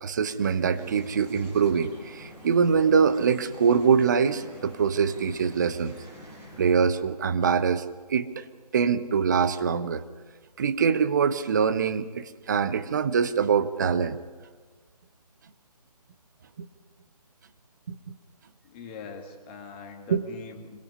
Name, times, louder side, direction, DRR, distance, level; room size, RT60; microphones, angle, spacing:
voice 1, 0.0-5.9 6.6-8.5 8.7-10.0 10.6-14.2 16.6-16.7 17.9-18.1 20.1-20.2, right 6 dB, 30° right, 12 dB, 1.0 m, -24 dB
sound 1, 0.7-6.9, equal, 10° right, 4.8 m, -47 dB
voice 2, 18.6-20.8, left 4 dB, 15° left, 2 dB, 2.1 m, -42 dB
26.0 x 22.5 x 5.6 m, 1.4 s
figure-of-eight pair, 150°, 21 cm